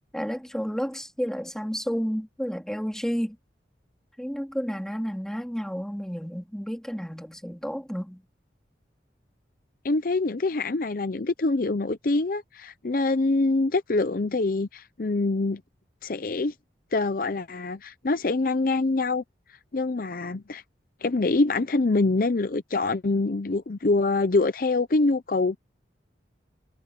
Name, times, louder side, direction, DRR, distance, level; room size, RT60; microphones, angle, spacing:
voice 1, 0.1-3.4 4.2-8.2, equal, 5° left, 3.1 m, -31 dB
voice 2, 9.8-15.6 16.0-16.5 16.9-19.2 19.7-20.6 21.0-25.6, left 3 dB, 50° left, 0.6 m, -25 dB
head